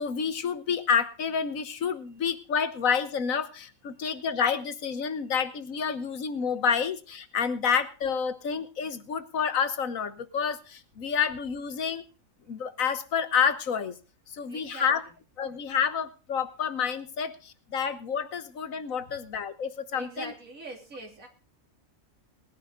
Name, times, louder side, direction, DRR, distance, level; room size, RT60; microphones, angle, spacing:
voice 1, 0.0-12.0 12.5-14.0 14.3-15.0 15.4-20.3, left 7 dB, 70° left, 12 dB, 1.5 m, -29 dB
voice 2, 14.5-15.2 19.0-19.2 19.9-21.3, right 2 dB, 65° right, 2 dB, 3.6 m, -44 dB
19.5 x 10.5 x 3.8 m, 0.33 s
omnidirectional pair, 1.5 m